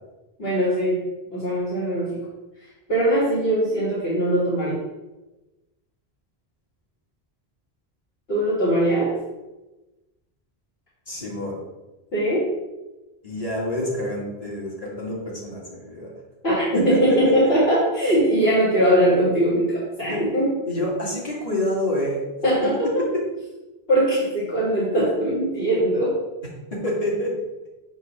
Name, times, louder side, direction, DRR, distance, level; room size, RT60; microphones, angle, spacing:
voice 1, 0.4-1.0 1.3-2.2 2.9-4.8 8.3-9.1 12.1-12.4 16.4-20.5 22.4-23.0 23.9-26.2, right 1 dB, 65° left, -10 dB, 2.6 m, -21 dB
voice 2, 11.1-11.6 13.2-16.1 16.7-17.3 20.1-20.2 20.7-22.2 23.1-23.2 26.7-27.3, left 1 dB, 35° left, -5 dB, 1.9 m, -27 dB
7.9 x 2.8 x 6.1 m, 1.1 s
omnidirectional pair, 1.1 m